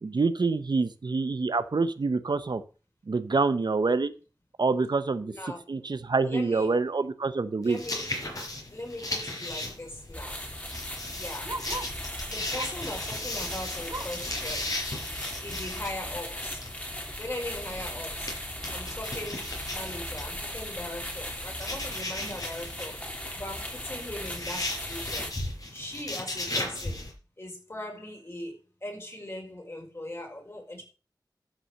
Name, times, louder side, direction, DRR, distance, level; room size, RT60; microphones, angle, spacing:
voice 1, 0.0-2.6 3.1-4.1 4.6-5.3 5.7-7.8 22.2-22.3, right 4 dB, 75° right, 0.9 m, -26 dB
voice 2, 5.2-5.6 6.2-6.7 7.6-8.1 8.7-10.4 11.1-11.6 12.2-14.7 15.4-16.6 17.2-18.3 18.7-23.0 23.3-25.3 25.7-27.0 27.4-28.5 28.8-30.8, left 1 dB, 35° left, 5.7 m, -39 dB
sound 1, 7.6-27.1, left 2 dB, 50° left, 5.2 m, -37 dB
Bark, 9.9-12.0 12.5-12.9 13.3-14.3 14.8-14.9 15.3-15.4 16.0-16.1, right 2 dB, 50° right, 1.8 m, -41 dB
sound 2, 10.1-25.3, left 1 dB, 20° left, 3.5 m, -38 dB
13.0 x 6.2 x 6.5 m
wide cardioid pair, 60°, 8 cm